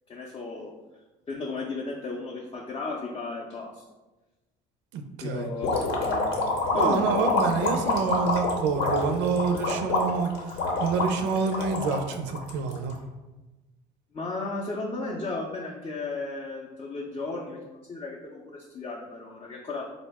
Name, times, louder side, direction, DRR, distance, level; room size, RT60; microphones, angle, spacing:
voice 1, 0.1-0.7 1.3-3.8 5.2-6.3 6.7-7.3 12.8-12.9 13.2-13.3 14.1-17.6 17.9-19.9, left 3 dB, 25° left, -2 dB, 0.5 m, -34 dB
voice 2, 4.9-5.5 6.7-10.3 10.8-12.9, right 5 dB, 70° right, 6 dB, 0.4 m, -27 dB
sound 1, 5.6-12.9, left 2 dB, 70° left, 0.8 m, -27 dB
3.8 x 2.0 x 3.4 m, 1.1 s
supercardioid pair, 95°, 19 cm